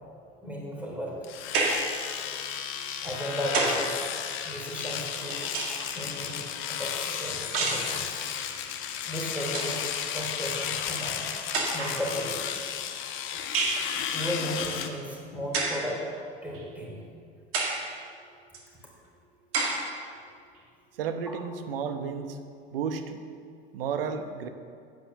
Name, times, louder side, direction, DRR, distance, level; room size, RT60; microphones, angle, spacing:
voice 1, 0.4-1.2 3.0-4.0 4.4-5.5 6.0-8.1 9.1-9.9 10.1-11.3 11.7-12.4 14.1-16.0 16.4-17.0, equal, 5° right, -3 dB, 3.5 m, -35 dB
Domestic sounds home sounds, 1.2-14.9, left 8 dB, 40° left, 1.0 m, -33 dB
sound 1, 1.5-2.0 3.0-3.9 5.0-6.0 7.5-7.9 9.0-9.1 9.4-9.8 10.8-10.9 11.5-12.0 13.5-13.9 15.5-15.9 16.5-16.6 17.5-17.9 18.5-18.6 19.5-19.9, right 3 dB, 45° right, 2.0 m, -29 dB
voice 2, 20.9-22.4 22.7-23.2 23.7-24.5, right 6 dB, 65° right, 8 dB, 1.0 m, -32 dB
9.9 x 9.3 x 6.6 m, 2.2 s
figure-of-eight pair, 70°, 31 cm